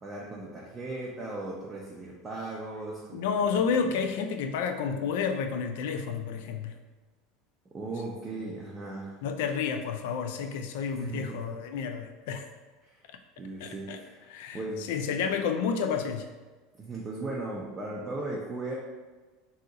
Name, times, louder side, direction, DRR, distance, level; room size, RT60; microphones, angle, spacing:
voice 1, 0.0-3.5 3.8-4.0 7.7-9.2 10.9-11.5 12.8-13.0 13.4-14.2 14.5-14.9 16.8-18.7, right 2 dB, 15° right, -4 dB, 0.4 m, -37 dB
voice 2, 3.1-6.8 9.2-12.5 13.1-13.2 13.6-14.0 14.3-14.6 14.9-16.3, left 6 dB, 70° left, 7 dB, 0.3 m, -30 dB
2.7 x 2.4 x 3.9 m, 1.3 s
supercardioid pair, 165°, 0 cm